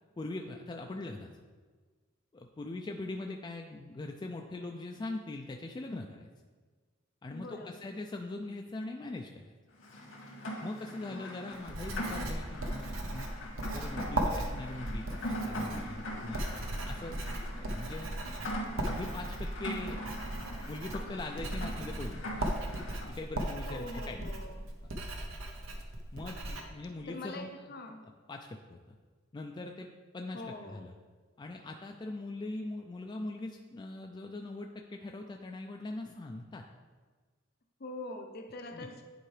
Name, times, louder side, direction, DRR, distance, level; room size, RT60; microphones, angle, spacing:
voice 1, 0.2-1.4 2.3-6.3 7.2-9.5 10.6-13.3 13.7-16.4 16.8-17.1 17.6-18.1 18.8-20.0 20.7-22.3 23.1-24.3 26.1-27.5 28.3-29.0 29.3-29.9 30.1-30.9 31.4-36.6 38.7-39.0, left 2 dB, 20° left, 2 dB, 0.3 m, -41 dB
voice 2, 7.3-7.9 11.1-11.5 23.7-24.7 27.1-28.1 30.3-30.9 37.8-39.0, left 2 dB, 50° left, 5 dB, 0.7 m, -44 dB
Rain, 9.8-23.1, equal, 90° left, 2.0 m, -41 dB
Writing, 11.5-26.6, right 1 dB, 80° right, 0.9 m, -37 dB
10.5 x 4.6 x 3.3 m, 1.4 s
head